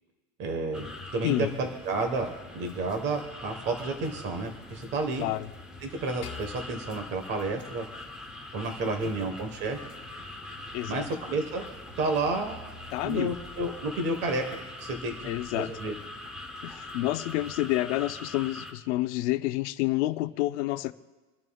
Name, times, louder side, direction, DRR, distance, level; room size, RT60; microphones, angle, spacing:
voice 1, 0.4-2.3 2.5-5.3 5.8-7.8 8.5-9.9 10.9-11.6 12.0-12.6 13.0-14.4 14.8-15.9, right 3 dB, 25° right, 5 dB, 1.3 m, -31 dB
sound 1, 0.7-18.7, left 2 dB, ahead, 0.9 m, -43 dB
voice 2, 1.2-1.5 5.2-5.5 9.0-9.1 10.7-11.1 12.9-13.3 15.2-15.7 16.6-20.9, left 16 dB, 60° left, 11 dB, 0.7 m, -29 dB
sound 2, 6.2-8.6, left 8 dB, 35° left, 1.7 m, -47 dB
25.5 x 12.0 x 2.3 m, 1.2 s
supercardioid pair, 180°, 40 cm